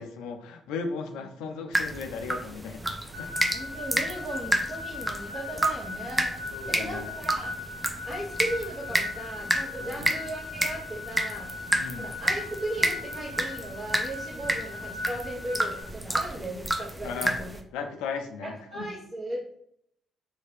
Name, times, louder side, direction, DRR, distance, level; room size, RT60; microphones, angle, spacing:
voice 1, 0.0-3.3 6.5-7.1 9.8-10.0 11.8-12.1 17.0-17.4 17.7-18.9, left 5 dB, 75° left, 6 dB, 0.4 m, -36 dB
sound 1, 1.7-17.6, right 1 dB, 15° right, 0.5 m, -31 dB
sound 2, 3.1-15.8, left 4 dB, 65° right, 1.2 m, -39 dB
voice 2, 3.5-6.4 6.7-7.6 8.0-11.5 12.0-17.6 18.4-19.6, right 1 dB, 30° right, -7 dB, 1.0 m, -37 dB
2.8 x 2.8 x 3.2 m, 0.71 s
hypercardioid pair, 45°, 0 cm